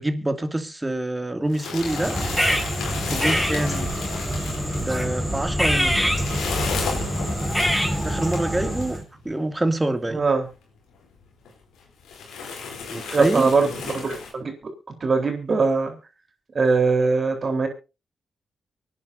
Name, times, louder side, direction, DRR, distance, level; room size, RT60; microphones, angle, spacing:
voice 1, 0.0-2.2 3.1-3.9 4.7-6.0 8.0-10.2 12.9-13.5, right 1 dB, 20° right, 2.4 m, -26 dB
sound 1, 1.4-8.9 9.8-9.9 10.2-10.3 11.0-11.1 11.5-11.6 12.0-14.3, left 5 dB, 85° left, 3.6 m, -33 dB
sound 2, 1.8-9.0, equal, ahead, 4.6 m, -25 dB
voice 2, 10.1-10.5 13.1-14.5 15.0-16.0 16.5-17.7, right 4 dB, 50° right, 3.9 m, -21 dB
25.0 x 9.7 x 2.7 m
supercardioid pair, 45°, 0 cm